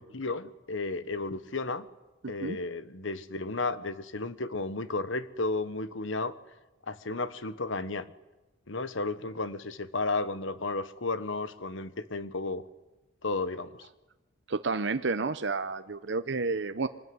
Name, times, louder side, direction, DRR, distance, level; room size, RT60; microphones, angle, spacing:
voice 1, 0.0-1.9 2.3-6.3 6.9-8.1 8.7-12.7 13.2-13.8, left 3 dB, 75° left, 13 dB, 1.2 m, -33 dB
voice 2, 2.2-2.6 14.5-16.9, right 4 dB, 65° right, 9 dB, 0.8 m, -30 dB
24.0 x 19.0 x 9.6 m, 1.1 s
head